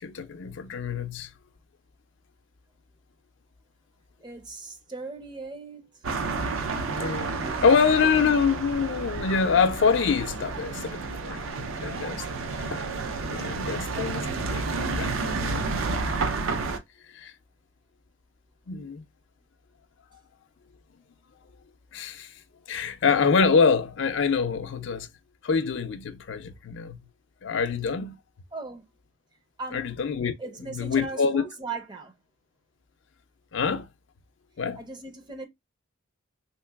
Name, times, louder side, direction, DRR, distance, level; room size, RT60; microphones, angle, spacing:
voice 1, 0.0-1.3 7.0-12.2 12.7-12.8 13.3-14.6 14.9-15.8 17.1-17.3 18.7-19.0 21.9-22.3 22.7-25.1 25.4-27.0 27.4-28.2 29.7-30.3 30.7-31.4 33.5-33.9 34.6-34.8, left 5 dB, 60° left, 0.4 m, -25 dB
voice 2, 4.2-6.0 7.4-7.9 13.9-14.2 28.5-28.8 29.6-29.9 30.4-32.1 34.8-35.5, right 3 dB, 20° right, 0.5 m, -38 dB
sound 1, 6.0-16.8, right 3 dB, 85° right, 0.5 m, -30 dB
3.2 x 2.8 x 2.2 m
head